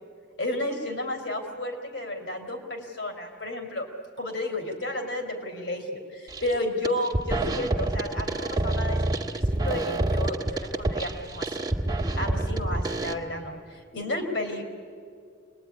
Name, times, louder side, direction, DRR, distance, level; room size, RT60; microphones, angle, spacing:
voice 1, 0.4-3.9 4.2-11.6 12.2-14.6, left 1 dB, 70° left, 3 dB, 4.1 m, -32 dB
sound 1, 6.3-6.5 6.8-13.1, right 2 dB, 25° right, 1.5 m, -27 dB
26.5 x 21.0 x 9.9 m, 2.2 s
head